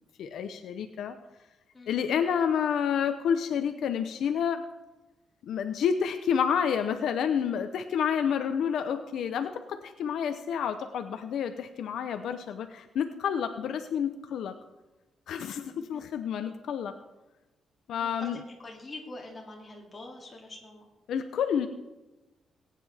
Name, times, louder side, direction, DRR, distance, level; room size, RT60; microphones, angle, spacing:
voice 1, 0.2-1.2 1.9-4.6 5.4-14.6 15.3-16.9 17.9-18.4 21.1-21.7, left 7 dB, 70° left, 8 dB, 0.7 m, -29 dB
voice 2, 1.7-2.1 15.7-16.1 17.9-18.3 18.6-20.9, left 2 dB, 20° left, -1 dB, 2.3 m, -45 dB
20.0 x 9.2 x 3.5 m, 1.1 s
cardioid pair, 160°, 0 cm